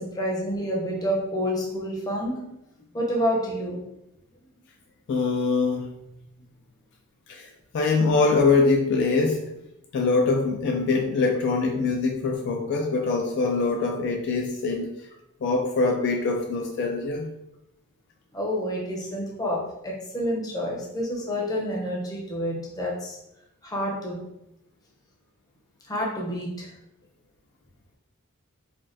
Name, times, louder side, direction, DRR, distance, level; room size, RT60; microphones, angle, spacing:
voice 1, 0.0-2.5 2.9-3.8 18.3-23.2 23.6-24.2 25.8-26.7, equal, 15° left, -3 dB, 0.6 m, -28 dB
voice 2, 5.1-5.9 7.3-9.5 9.9-14.9 15.4-17.3, left 3 dB, 55° left, 1 dB, 0.3 m, -23 dB
3.3 x 2.2 x 2.6 m, 0.85 s
head